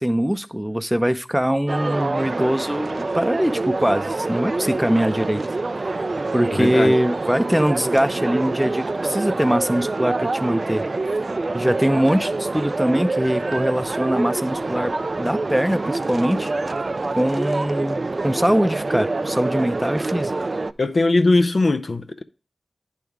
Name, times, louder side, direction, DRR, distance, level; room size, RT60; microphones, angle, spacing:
voice 1, 0.0-5.4 6.3-10.8 11.5-14.9 15.2-16.5 17.1-20.3, equal, 5° right, 0.5 m, -22 dB
sound 1, 1.7-20.7, right 3 dB, 55° right, 0.3 m, -26 dB
voice 2, 6.5-7.0 20.8-22.2, left 2 dB, 65° left, 0.5 m, -20 dB
9.7 x 3.6 x 4.6 m
cardioid pair, 40°, 0 cm